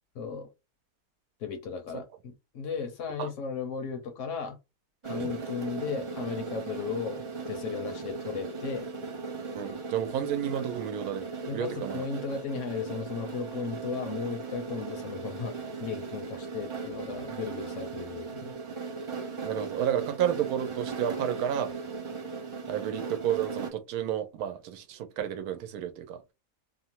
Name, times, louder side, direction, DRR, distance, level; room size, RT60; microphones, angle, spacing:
voice 1, 0.1-0.5 1.4-4.6 5.0-8.9 11.5-18.5, left 5 dB, 65° left, 0.9 m, -35 dB
sound 1, 5.0-23.7, right 4 dB, 55° right, 0.3 m, -38 dB
voice 2, 9.6-11.3 11.5-12.0 19.4-21.7 22.7-26.2, right 10 dB, 80° right, 1.1 m, -31 dB
3.0 x 2.1 x 2.8 m
omnidirectional pair, 1.6 m